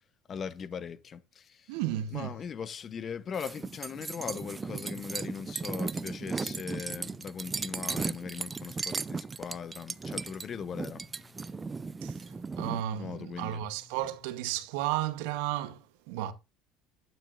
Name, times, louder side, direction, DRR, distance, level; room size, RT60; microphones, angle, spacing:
voice 1, 0.3-1.8 2.1-12.6 13.0-13.7, left 7 dB, 40° left, 0.7 m, -40 dB
voice 2, 1.7-2.3 12.0-16.3, right 12 dB, 75° right, 0.9 m, -33 dB
sound 1, 3.3-12.8, right 4 dB, 25° right, 0.4 m, -36 dB
9.7 x 9.1 x 2.4 m
supercardioid pair, 85°, 0 cm